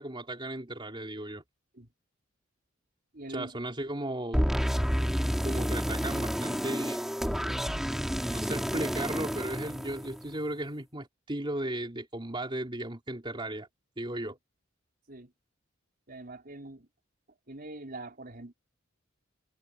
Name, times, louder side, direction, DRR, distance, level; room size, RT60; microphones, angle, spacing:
voice 1, 0.0-1.4 3.3-4.4 5.4-7.0 8.3-13.7 14.0-14.4, right 1 dB, 25° right, 3.6 m, -36 dB
voice 2, 3.1-3.6 15.1-15.3 16.1-16.9 17.5-18.5, right 2 dB, 50° right, 4.9 m, -43 dB
sound 1, 4.3-10.5, equal, ahead, 3.2 m, -30 dB
head